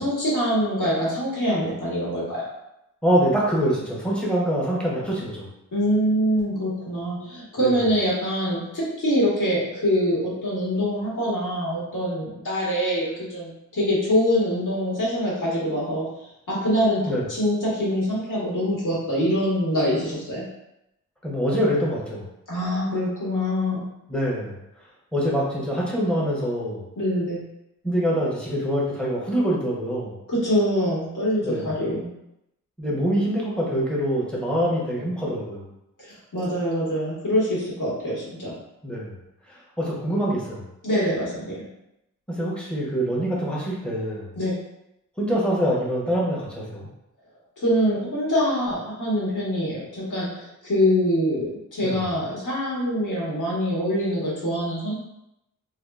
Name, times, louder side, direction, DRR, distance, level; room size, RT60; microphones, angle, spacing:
voice 1, 0.0-2.4 5.7-16.0 16.5-20.4 22.5-23.8 27.0-27.4 30.3-32.1 36.0-38.5 40.8-41.6 44.4-44.5 47.6-54.9, equal, 75° left, -8 dB, 1.5 m, -24 dB
voice 2, 3.0-5.5 7.6-7.8 17.1-17.3 21.2-22.3 24.1-24.5 25.1-26.8 27.8-30.1 31.4-31.7 32.8-35.6 38.8-39.1 39.8-40.7 42.3-44.4 45.2-46.9 51.8-52.0, equal, 5° left, -5 dB, 0.8 m, -25 dB
3.5 x 2.3 x 2.3 m, 0.86 s
wide cardioid pair, 135°, 32 cm